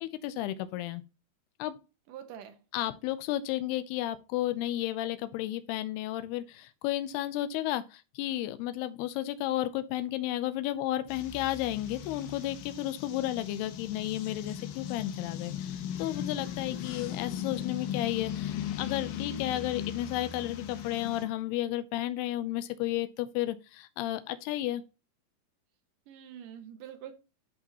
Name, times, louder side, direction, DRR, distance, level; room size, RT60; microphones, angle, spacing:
voice 1, 0.0-1.0 1.6-1.7 2.7-24.8, left 14 dB, 90° left, 2.7 m, -33 dB
voice 2, 2.1-2.6 26.1-27.1, right 9 dB, 65° right, 2.5 m, -45 dB
sound 1, 11.1-21.3, left 10 dB, 70° left, 2.7 m, -38 dB
10.5 x 5.4 x 2.9 m
omnidirectional pair, 4.5 m